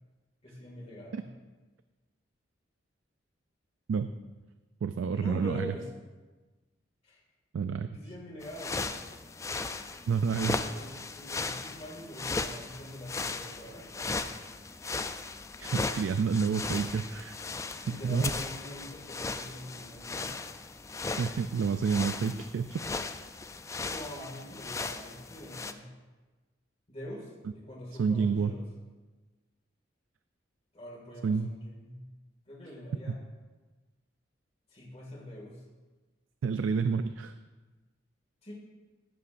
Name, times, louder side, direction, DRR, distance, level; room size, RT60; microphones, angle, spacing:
voice 1, 0.4-1.2 5.1-5.9 7.0-7.2 7.9-8.9 10.5-14.4 17.8-20.4 23.8-25.9 26.9-28.7 30.7-32.0 32.5-33.2 34.7-35.6 38.4-38.5, equal, 35° left, -4 dB, 2.1 m, -44 dB
voice 2, 4.8-5.7 7.5-7.9 10.1-10.6 15.6-17.4 17.9-18.3 21.2-22.8 28.0-28.5 31.2-31.5 36.4-37.3, right 5 dB, 90° right, 10 dB, 0.4 m, -29 dB
sound 1, 8.4-25.7, left 3 dB, 15° left, 0.3 m, -37 dB
14.5 x 8.6 x 2.5 m, 1.2 s
head